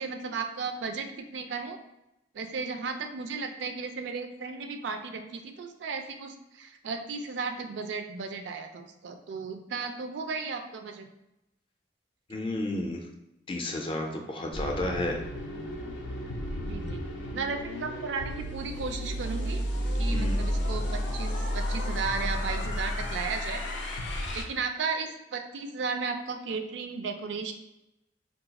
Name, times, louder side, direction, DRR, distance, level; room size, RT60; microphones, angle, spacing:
voice 1, 0.0-1.8 2.3-11.1 16.7-17.0 17.3-19.6 20.0-23.6 24.3-27.5, right 4 dB, 75° right, 6 dB, 0.4 m, -35 dB
voice 2, 12.3-13.0 13.5-15.2 20.1-20.4, left 1 dB, 30° left, 2 dB, 0.4 m, -32 dB
sound 1, 14.5-24.4, equal, 85° left, 0.5 m, -32 dB
2.3 x 2.3 x 3.9 m, 0.91 s
head